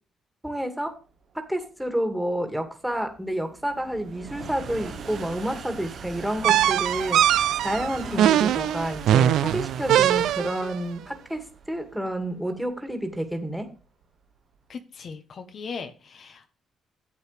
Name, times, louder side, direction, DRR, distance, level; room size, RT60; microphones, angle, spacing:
voice 1, 0.4-0.9 1.3-13.7, right 1 dB, 5° right, 5 dB, 2.4 m, -29 dB
sound 1, 1.2-14.6, right 6 dB, 60° right, 1.3 m, -41 dB
sound 2, 6.4-10.7, right 11 dB, 80° right, 0.4 m, -21 dB
voice 2, 14.7-16.5, left 5 dB, 55° left, 7 dB, 1.3 m, -38 dB
12.0 x 8.2 x 3.5 m, 0.34 s
cardioid pair, 90°, 0 cm